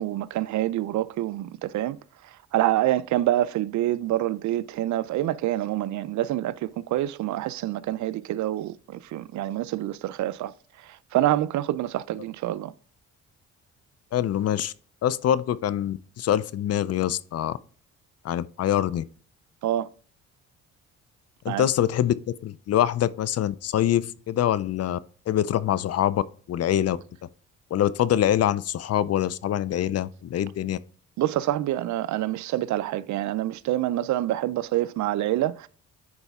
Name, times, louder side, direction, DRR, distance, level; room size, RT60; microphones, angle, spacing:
voice 1, 0.0-2.0 2.5-10.5 11.1-12.7 19.6-19.9 21.5-21.7 31.2-35.7, right 14 dB, 70° right, 0.5 m, -26 dB
voice 2, 14.1-14.7 15.0-17.6 18.2-19.0 21.4-22.1 22.4-25.0 25.3-26.2 26.5-27.0 27.7-30.8, left 11 dB, 55° left, 0.5 m, -24 dB
9.9 x 4.0 x 3.6 m
cardioid pair, 90°, 30 cm